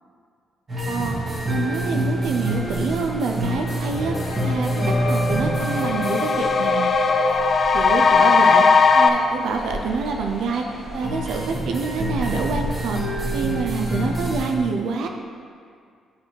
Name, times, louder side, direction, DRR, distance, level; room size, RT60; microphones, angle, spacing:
sound 1, 0.7-14.6, right 1 dB, 35° right, 1.9 m, -27 dB
voice 1, 0.9-1.2 1.5-4.2 4.4-6.9 7.7-8.7 8.9-10.6 10.9-13.0 13.3-15.1, right 4 dB, 75° right, 3 dB, 0.5 m, -26 dB
sound 2, 3.3-3.4 3.7-9.1, left 5 dB, 45° left, 0.5 m, -19 dB
12.0 x 4.1 x 3.3 m, 2.2 s
cardioid pair, 90°, 0 cm